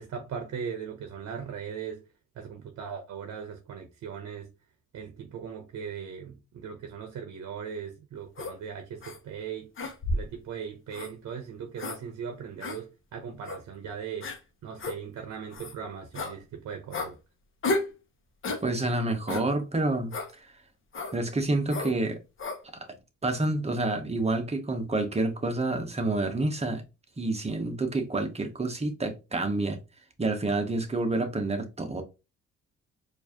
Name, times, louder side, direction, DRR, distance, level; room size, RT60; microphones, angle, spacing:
voice 1, 0.0-2.0 2.4-4.5 4.9-9.7 10.1-14.3 14.6-17.2, right 7 dB, 60° right, 0.8 m, -39 dB
sound 1, 8.4-8.5 9.0-9.2 9.8-10.3 10.9-11.1 11.8-12.0 12.6-12.8 13.4-13.6 14.2-14.4 14.8-15.0 15.5-15.7 16.1-16.3 16.9-17.1 17.6-17.9 18.4-18.6 19.3-19.5 20.1-20.3 20.9-21.2 21.7-21.9 22.4-22.6, left 2 dB, 45° left, 1.0 m, -32 dB
voice 2, 18.6-20.5 21.1-22.2 22.7-22.9 23.2-26.8 27.2-29.8 30.2-32.0, right 2 dB, 20° right, 0.9 m, -28 dB
4.5 x 2.6 x 2.9 m
cardioid pair, 90°, 30 cm